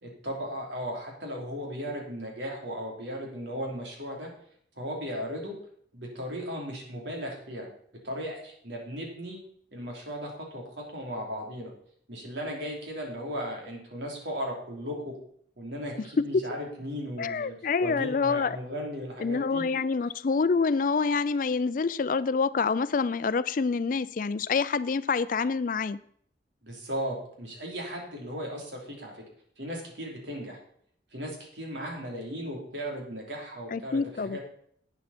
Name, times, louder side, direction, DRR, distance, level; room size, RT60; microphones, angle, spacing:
voice 1, 0.0-4.3 4.8-5.6 5.9-7.7 8.0-9.4 9.7-11.7 12.1-15.1 15.6-17.5 17.8-19.6 26.6-29.2 29.6-30.6 31.1-34.4, equal, 90° right, 3.3 m, -36 dB
voice 2, 17.2-18.6 19.2-26.0 33.7-34.4, left 4 dB, 50° left, 0.4 m, -27 dB
11.0 x 9.0 x 4.2 m
head